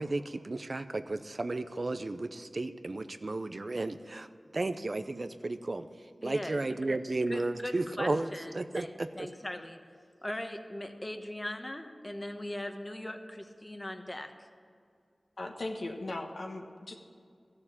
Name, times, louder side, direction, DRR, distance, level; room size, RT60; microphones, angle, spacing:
voice 1, 0.0-4.3 4.5-5.9 6.2-8.3 8.5-9.3, right 2 dB, 55° right, 10 dB, 0.6 m, -33 dB
voice 2, 6.2-6.6 7.3-9.8 10.2-14.3, left 1 dB, 25° left, 6 dB, 1.1 m, -40 dB
voice 3, 15.4-16.9, left 2 dB, 70° left, 2 dB, 1.4 m, -38 dB
14.5 x 6.7 x 8.7 m, 2.3 s
wide cardioid pair, 50°, 0 cm